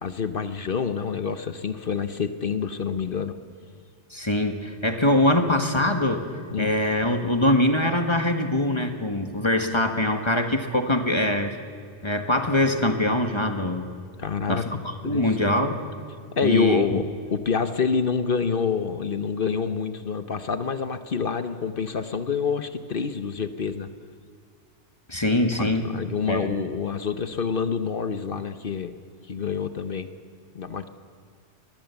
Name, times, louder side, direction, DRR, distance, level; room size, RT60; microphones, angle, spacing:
voice 1, 0.0-3.3 6.5-6.7 14.2-14.7 15.0-15.5 16.4-23.9 25.6-28.9 29.3-30.1 30.5-30.9, left 6 dB, 50° left, 10 dB, 1.0 m, -27 dB
voice 2, 4.1-6.2 6.6-11.6 12.0-13.8 14.5-15.8 16.4-17.0 25.1-25.9 26.3-26.6, left 1 dB, 25° left, 5 dB, 1.5 m, -23 dB
23.0 x 21.0 x 7.0 m, 2.1 s
omnidirectional pair, 1.3 m